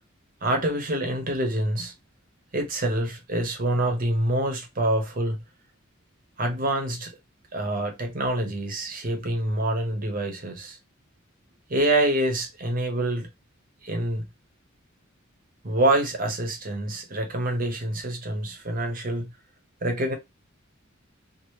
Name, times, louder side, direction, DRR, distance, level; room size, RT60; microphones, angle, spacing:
voice 1, 0.4-1.9 2.5-5.4 6.4-7.1 7.5-10.8 11.7-13.3 13.8-14.2 15.6-19.3 19.8-20.2, right 1 dB, 45° right, 1.0 m, -26 dB
2.9 x 2.7 x 3.1 m
head